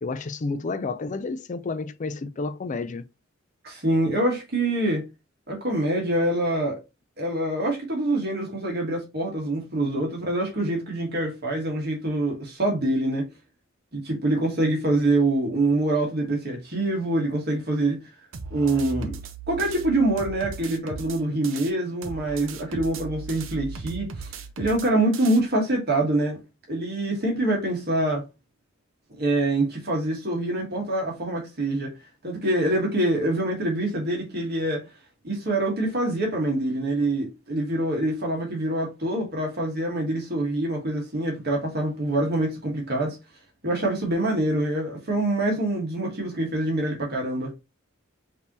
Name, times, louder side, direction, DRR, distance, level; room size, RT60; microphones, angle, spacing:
voice 1, 0.0-3.0, left 3 dB, 40° left, 0.4 m, -30 dB
voice 2, 3.6-5.0 5.5-6.8 7.2-13.3 13.9-18.0 18.5-19.2 19.5-24.3 24.6-26.4 26.7-28.2 29.1-31.9 32.2-34.9 35.2-43.2 43.6-47.5, right 1 dB, 55° right, 1.5 m, -25 dB
sound 1, 18.3-21.7 22.0-25.4, right 4 dB, 75° right, 0.7 m, -37 dB
5.2 x 2.8 x 2.9 m
head